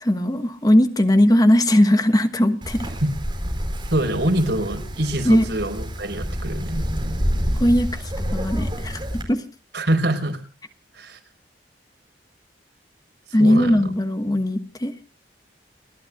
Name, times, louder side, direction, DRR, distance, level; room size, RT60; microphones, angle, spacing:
voice 1, 0.0-2.9 5.2-5.5 7.5-9.4 13.3-14.9, left 1 dB, 20° left, 8 dB, 1.3 m, -19 dB
Wind, 2.6-9.2, equal, 25° right, 4.2 m, -28 dB
voice 2, 3.9-6.8 9.7-10.4 10.9-11.2 13.4-13.9, right 1 dB, 80° right, 5 dB, 4.4 m, -24 dB
30.0 x 11.5 x 2.4 m, 0.32 s
head